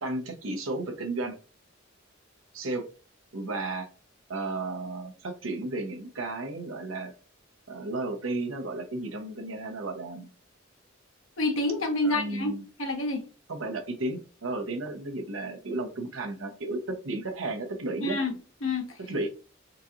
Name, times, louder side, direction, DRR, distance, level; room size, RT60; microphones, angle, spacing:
voice 1, 0.0-1.3 2.5-2.9 3.3-3.9 4.3-7.1 7.7-10.3 12.0-12.6 13.5-18.2 19.1-19.3, right 2 dB, 90° right, 4 dB, 0.8 m, -33 dB
voice 2, 11.4-12.5 12.8-13.2 18.0-18.3 18.6-19.0, left 2 dB, 80° left, 2 dB, 1.1 m, -28 dB
3.9 x 2.8 x 2.4 m, 0.35 s
head